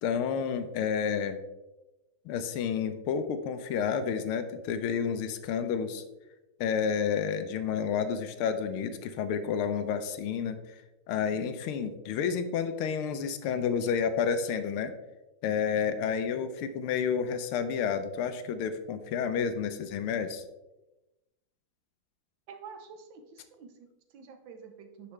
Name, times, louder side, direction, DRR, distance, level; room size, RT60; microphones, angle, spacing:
voice 1, 0.0-1.4 2.2-6.0 6.6-10.6 11.1-14.9 15.4-20.4, left 7 dB, 90° left, 10 dB, 1.6 m, -30 dB
voice 2, 22.5-25.1, right 6 dB, 65° right, 7 dB, 1.6 m, -48 dB
10.0 x 5.9 x 3.3 m, 1.0 s
omnidirectional pair, 2.3 m